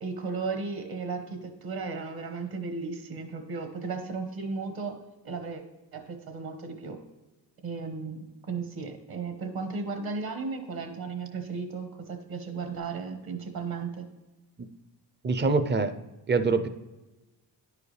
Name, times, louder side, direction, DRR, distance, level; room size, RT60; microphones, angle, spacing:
voice 1, 0.0-5.0 5.2-5.6 5.9-7.0 7.6-14.0, right 4 dB, 60° right, 5 dB, 1.4 m, -35 dB
voice 2, 15.2-16.0 16.3-16.7, right 4 dB, 25° right, 10 dB, 0.5 m, -24 dB
10.0 x 4.8 x 3.3 m, 1.1 s
cardioid pair, 85°, 42 cm